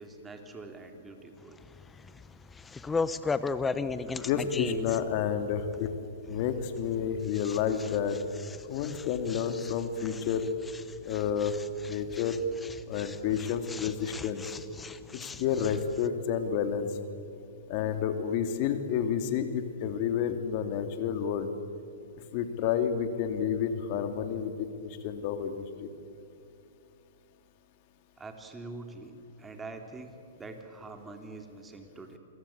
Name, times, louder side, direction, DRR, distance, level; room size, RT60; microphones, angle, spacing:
voice 1, 0.0-1.6 28.2-32.2, right 3 dB, 15° right, 5 dB, 3.1 m, -45 dB
sound 1, 1.4-16.1, left 4 dB, 10° left, 0.9 m, -38 dB
voice 2, 4.2-5.9 6.3-8.2 8.7-10.5 11.0-11.5 11.8-12.4 12.9-14.4 15.4-16.9 17.7-21.5 22.3-25.9, left 8 dB, 45° left, 8 dB, 2.5 m, -30 dB
27.5 x 22.5 x 8.7 m, 2.6 s
hypercardioid pair, 130°, 0 cm